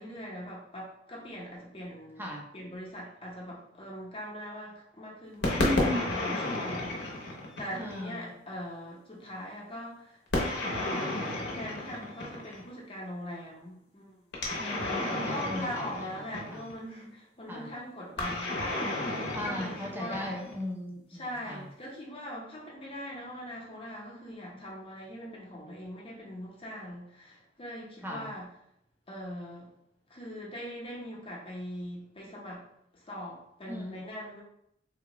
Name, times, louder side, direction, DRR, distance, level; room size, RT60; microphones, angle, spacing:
voice 1, 0.0-7.2 7.6-11.2 11.5-14.7 15.0-18.6 19.0-20.3 21.1-28.5 29.1-29.7 30.1-32.7 32.9-34.4, equal, 30° left, -3 dB, 0.8 m, -41 dB
sound 1, 5.4-8.1 10.3-12.7 14.3-16.8 18.2-20.6, left 1 dB, 60° left, 0.8 m, -32 dB
voice 2, 5.6-6.1 7.8-8.3 14.6-16.0 16.5-16.6 17.5-17.7 19.3-21.7 28.0-28.3 33.7-33.9, left 1 dB, 10° right, -2 dB, 0.5 m, -36 dB
3.6 x 2.3 x 2.9 m, 0.77 s
head